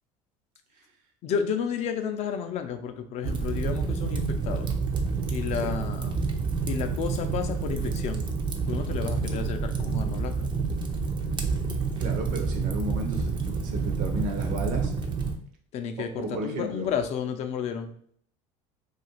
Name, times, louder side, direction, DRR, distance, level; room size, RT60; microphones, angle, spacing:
voice 1, 1.2-4.7 5.3-6.2 6.7-8.2 8.7-10.5 15.7-17.9, left 7 dB, 45° left, 7 dB, 0.4 m, -31 dB
Fire, 3.2-15.4, right 4 dB, 30° right, 0.4 m, -28 dB
voice 2, 12.0-14.9 16.3-16.9, right 1 dB, 60° right, 3 dB, 0.7 m, -34 dB
2.4 x 2.4 x 3.0 m, 0.63 s
supercardioid pair, 100°, 15 cm